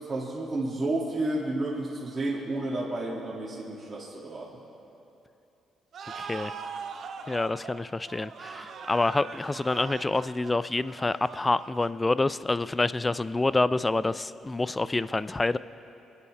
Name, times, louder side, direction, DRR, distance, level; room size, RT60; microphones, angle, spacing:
voice 1, 0.1-4.5, right 2 dB, 35° right, -5 dB, 2.4 m, -31 dB
sound 1, 5.9-12.4, right 5 dB, 60° right, 0.7 m, -41 dB
voice 2, 6.2-6.5 7.3-15.6, left 2 dB, 20° left, 16 dB, 0.4 m, -27 dB
24.0 x 9.9 x 3.4 m, 2.8 s
supercardioid pair, 65°, 0 cm